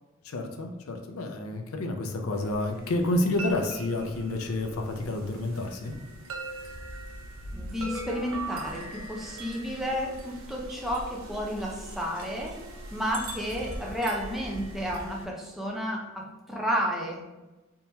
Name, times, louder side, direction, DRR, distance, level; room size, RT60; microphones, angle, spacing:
voice 1, 0.2-5.9, left 1 dB, 85° left, 5 dB, 0.5 m, -29 dB
sound 1, 2.3-15.3, right 2 dB, 80° right, 0.5 m, -41 dB
voice 2, 7.5-12.6 12.9-17.2, equal, ahead, -2 dB, 0.5 m, -31 dB
3.5 x 2.9 x 2.7 m, 1.1 s
head